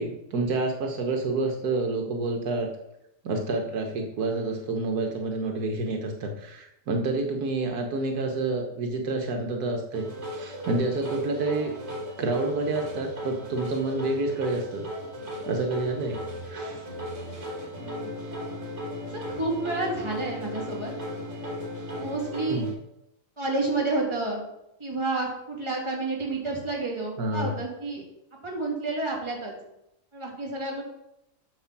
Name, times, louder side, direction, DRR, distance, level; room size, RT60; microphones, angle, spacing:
voice 1, 0.0-2.7 3.2-11.7 12.2-14.9 15.5-16.9 22.5-22.7 27.2-27.6, right 3 dB, 80° right, 3 dB, 1.6 m, -28 dB
sound 1, 9.9-22.7, equal, 55° right, 2.7 m, -36 dB
voice 2, 17.7-18.1 19.1-20.9 22.0-22.6 23.4-24.4 24.8-28.0 28.4-29.5 30.1-30.8, right 2 dB, 20° right, -2 dB, 2.6 m, -30 dB
7.9 x 6.7 x 5.9 m, 0.84 s
omnidirectional pair, 1.6 m